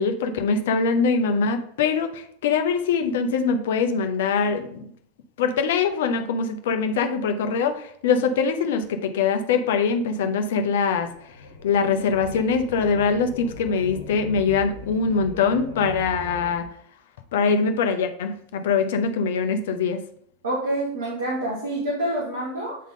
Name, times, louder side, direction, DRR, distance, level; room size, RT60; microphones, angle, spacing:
voice 1, 0.0-4.8 5.4-11.1 11.6-16.7 17.3-20.0, left 5 dB, 65° left, 7 dB, 0.7 m, -23 dB
sound 1, 10.9-16.7, left 2 dB, 85° left, 1.2 m, -38 dB
voice 2, 20.4-22.8, right 1 dB, 80° right, -5 dB, 1.5 m, -27 dB
8.4 x 3.7 x 3.7 m, 0.65 s
figure-of-eight pair, 85°, 0 cm